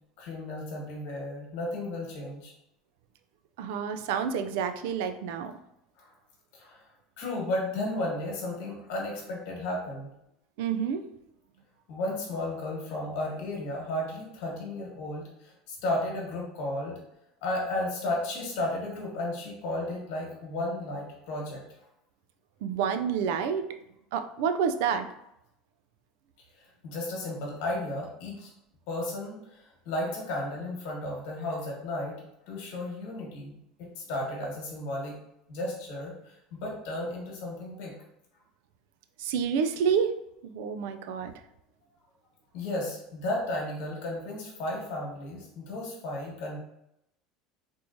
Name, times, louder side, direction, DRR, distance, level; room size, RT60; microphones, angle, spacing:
voice 1, 0.2-2.5 6.0-6.1 6.5-6.8 7.2-10.1 11.9-17.0 17.4-21.6 26.6-28.5 28.9-32.2 32.5-35.2 35.5-37.9 42.5-46.6, left 1 dB, 65° left, -1 dB, 1.3 m, -34 dB
voice 2, 3.6-5.5 10.6-11.0 22.6-23.7 24.1-25.1 39.2-40.1 40.4-41.3, right 7 dB, 70° right, 8 dB, 0.3 m, -28 dB
3.5 x 3.0 x 2.6 m, 0.81 s
cardioid pair, 170°, 0 cm